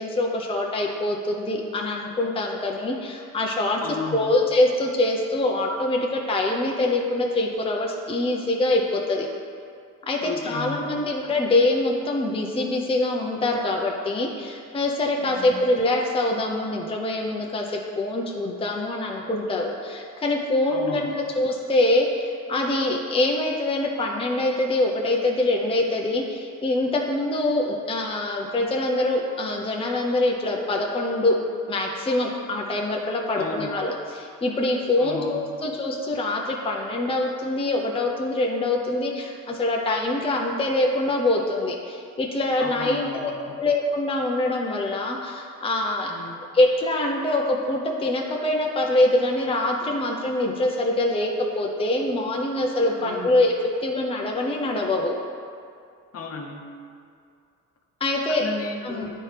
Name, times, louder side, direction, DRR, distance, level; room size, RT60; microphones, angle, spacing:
voice 1, 0.0-3.8 4.1-9.3 10.0-31.4 31.7-43.3 43.6-46.1 46.5-53.5 53.8-55.1 58.0-58.4 58.8-59.1, left 2 dB, 20° left, 0 dB, 0.6 m, -24 dB
voice 2, 3.8-4.3 10.2-11.0 15.2-15.5 20.7-21.1 33.3-33.7 35.0-35.5 42.6-43.6 46.0-46.4 53.0-53.4 56.1-56.7 58.3-59.1, left 4 dB, 50° left, 2 dB, 0.9 m, -34 dB
9.4 x 4.3 x 3.3 m, 2.3 s
cardioid pair, 90°, 30 cm